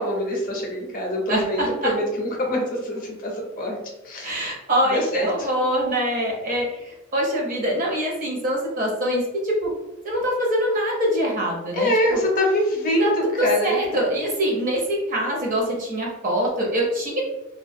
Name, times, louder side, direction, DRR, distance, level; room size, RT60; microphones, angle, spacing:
voice 1, 0.0-3.8 4.0-4.6 4.9-5.3 11.7-13.9, equal, 40° left, 0 dB, 0.5 m, -24 dB
voice 2, 1.3-1.9 4.2-9.7 10.0-12.2 13.0-17.2, equal, 40° right, -2 dB, 0.6 m, -24 dB
2.2 x 2.1 x 2.6 m, 0.94 s
head